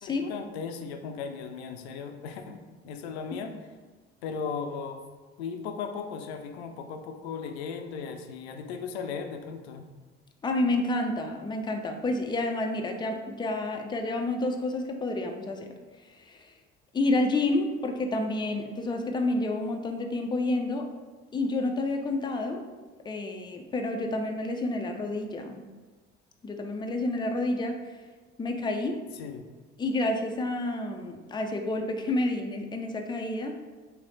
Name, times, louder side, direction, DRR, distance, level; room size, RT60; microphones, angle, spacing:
voice 1, 0.0-2.6 2.8-3.5 4.2-5.0 5.4-9.8 29.2-29.5, left 6 dB, 75° left, 6 dB, 0.5 m, -36 dB
voice 2, 10.4-15.7 16.0-16.5 16.9-20.9 21.3-22.7 23.0-25.6 26.4-28.0 28.4-29.0 29.8-33.6, left 2 dB, 15° left, 4 dB, 0.4 m, -29 dB
3.2 x 2.8 x 3.9 m, 1.3 s
figure-of-eight pair, 55°, 32 cm